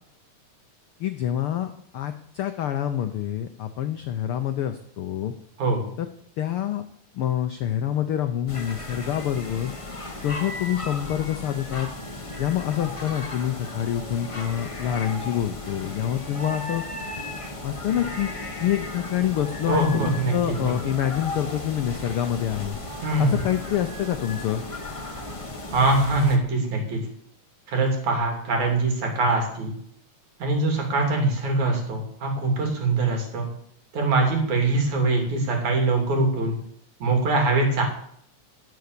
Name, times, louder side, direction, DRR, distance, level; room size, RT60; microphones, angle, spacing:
voice 1, 1.0-5.3 6.0-6.1 6.4-6.8 7.1-9.7 10.2-11.9 12.4-16.8 17.6-18.3 18.6-22.8 23.2-24.6, left 10 dB, 80° left, 8 dB, 1.2 m, -26 dB
sound 1, 8.5-26.4, left 2 dB, 40° left, 0.4 m, -35 dB
voice 2, 19.7-20.7 23.0-23.4 25.7-27.0 27.7-29.7 30.4-33.5 33.9-36.5 37.0-37.8, right 2 dB, 70° right, 2 dB, 4.4 m, -23 dB
17.5 x 7.1 x 6.8 m, 0.67 s
omnidirectional pair, 3.5 m